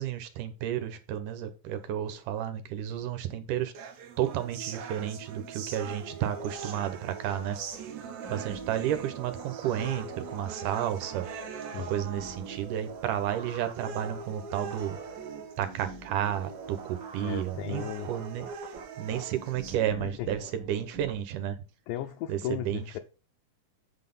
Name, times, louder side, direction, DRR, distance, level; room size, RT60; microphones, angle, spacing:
voice 1, 0.0-3.7 4.2-7.6 8.3-11.2 11.9-15.0 15.6-18.5 19.0-21.6 22.3-23.0, right 10 dB, 85° right, 2.3 m, -32 dB
sound 1, 3.7-19.8, right 6 dB, 70° right, 1.4 m, -42 dB
sound 2, 6.4-21.1, right 4 dB, 50° right, 1.0 m, -46 dB
voice 2, 17.2-18.1 20.0-20.3 21.9-23.0, left 12 dB, 80° left, 1.9 m, -36 dB
8.1 x 4.0 x 5.3 m
omnidirectional pair, 3.7 m